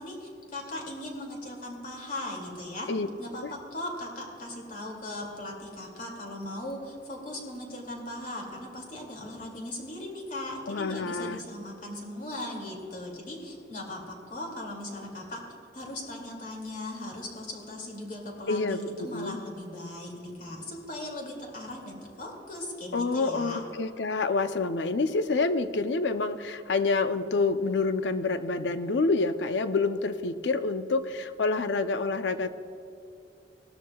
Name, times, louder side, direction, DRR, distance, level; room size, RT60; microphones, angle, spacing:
voice 1, 0.0-2.9 3.2-15.4 15.7-23.6, left 1 dB, 50° left, 0 dB, 2.4 m, -38 dB
voice 2, 10.7-11.4 18.5-19.4 22.9-32.5, left 3 dB, 75° left, 11 dB, 0.6 m, -27 dB
18.0 x 13.0 x 2.3 m, 2.5 s
head